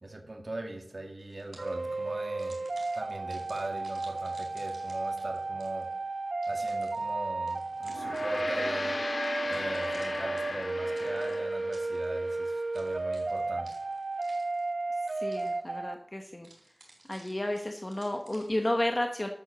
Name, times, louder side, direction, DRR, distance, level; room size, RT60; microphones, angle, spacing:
voice 1, 0.0-2.6 2.9-5.9 6.5-9.0 9.2-13.7, right 2 dB, 45° right, 2 dB, 2.3 m, -40 dB
sound 1, 1.2-1.9 2.4-6.0 6.4-8.7 9.2-12.3 12.7-14.8 15.1-15.8 16.4-18.7, right 2 dB, 85° right, 4.4 m, -56 dB
sound 2, 1.6-15.9, right 3 dB, 65° right, 0.4 m, -33 dB
Gong, 7.9-12.5, left 2 dB, 50° left, 0.4 m, -36 dB
voice 2, 15.2-16.5 17.1-19.3, left 1 dB, 25° left, 4 dB, 1.1 m, -32 dB
12.0 x 7.9 x 6.8 m, 0.71 s
wide cardioid pair, 70°, 0 cm